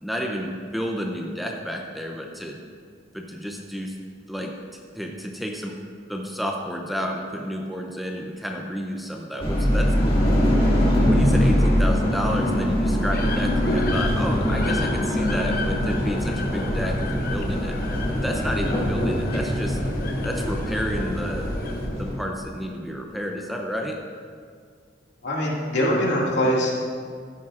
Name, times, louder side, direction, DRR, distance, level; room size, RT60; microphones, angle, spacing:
voice 1, 0.0-2.6 3.1-4.0 4.3-4.5 4.9-5.8 6.1-10.5 10.8-17.8 18.1-19.8 20.2-24.0, equal, ahead, 0 dB, 0.6 m, -31 dB
sound 1, 9.4-22.2, equal, 30° left, 2.3 m, -23 dB
sound 2, 13.1-21.9, left 2 dB, 50° left, 0.9 m, -33 dB
voice 2, 25.2-26.7, equal, 70° left, -5 dB, 2.3 m, -22 dB
13.5 x 10.0 x 2.5 m, 2.1 s
head